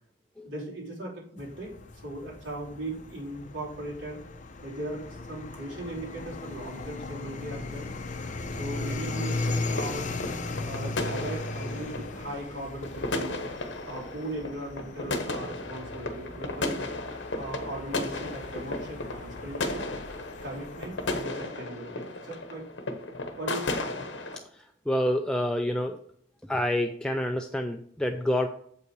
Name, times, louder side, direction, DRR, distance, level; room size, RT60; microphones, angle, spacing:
voice 1, 0.4-4.2 4.6-7.9 8.6-10.1 10.6-13.4 13.8-16.9 17.4-19.9 20.4-22.6 23.4-23.8, right 1 dB, 85° right, -4 dB, 3.2 m, -38 dB
sound 1, 1.4-21.2, left 3 dB, 40° left, 0.7 m, -37 dB
sound 2, 9.3-24.4, left 2 dB, 70° left, 1.0 m, -35 dB
voice 2, 24.9-26.0 26.5-28.5, left 1 dB, 5° left, 3 dB, 0.4 m, -27 dB
7.5 x 5.6 x 4.7 m, 0.66 s
head